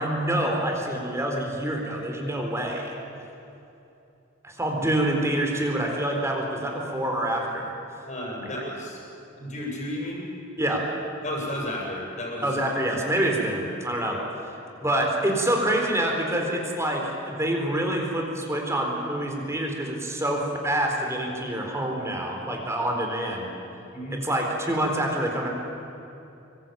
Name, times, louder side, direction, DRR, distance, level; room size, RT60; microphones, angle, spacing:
voice 1, 0.0-2.9 4.4-7.7 10.6-10.9 12.4-14.2 14.8-23.5 24.2-25.5, right 1 dB, 15° right, 1 dB, 4.1 m, -26 dB
voice 2, 8.1-9.0 9.4-10.3 11.2-12.5 23.9-24.2, equal, 35° left, -1 dB, 7.2 m, -33 dB
27.0 x 24.0 x 9.3 m, 2.8 s
head